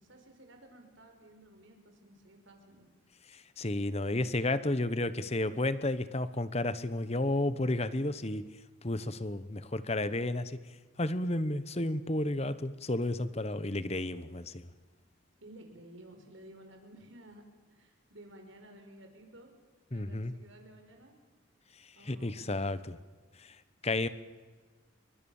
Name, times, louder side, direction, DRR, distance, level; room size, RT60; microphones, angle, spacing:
voice 1, 0.0-2.9 15.4-17.4 17.7-19.5 19.9-21.2 22.0-22.5, right 1 dB, 65° right, 4 dB, 5.5 m, -54 dB
voice 2, 3.3-8.4 8.8-10.6 11.0-14.6 19.9-20.3 22.0-23.0 23.4-23.6 23.8-24.1, left 1 dB, 30° left, 13 dB, 1.1 m, -32 dB
29.0 x 24.0 x 7.3 m, 1.4 s
head